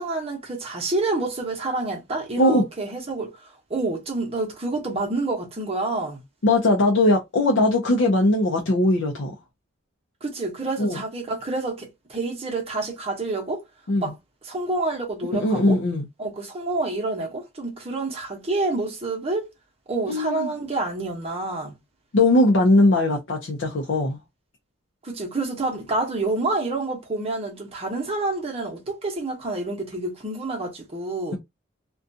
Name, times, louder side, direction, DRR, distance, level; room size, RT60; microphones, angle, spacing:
voice 1, 0.0-3.4 3.7-6.2 10.2-13.6 14.0-14.1 14.4-15.8 16.2-19.5 19.9-21.8 25.0-31.4, right 2 dB, 30° right, 0.9 m, -28 dB
voice 2, 6.4-9.3 10.8-11.0 13.9-14.1 15.3-16.1 20.1-20.5 22.1-24.2, left 2 dB, 65° left, 0.5 m, -20 dB
2.4 x 2.2 x 2.6 m
head